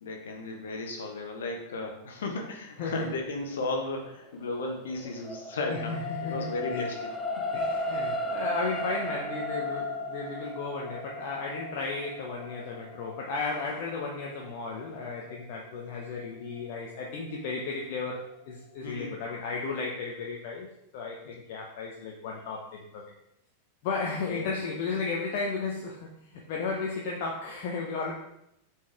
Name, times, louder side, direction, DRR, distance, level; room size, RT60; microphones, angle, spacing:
voice 1, 0.0-7.1 7.4-7.5 18.8-19.1 24.3-24.5, left 2 dB, 65° left, 2 dB, 1.4 m, -35 dB
voice 2, 2.8-3.1 5.7-6.9 7.5-20.7 20.9-23.1 23.8-28.1, left 4 dB, 50° left, -1 dB, 1.0 m, -34 dB
sound 1, 4.5-17.0 17.5-17.6, left 1 dB, 10° left, 0.8 m, -36 dB
7.2 x 4.7 x 3.6 m, 0.81 s
figure-of-eight pair, 90°, 0 cm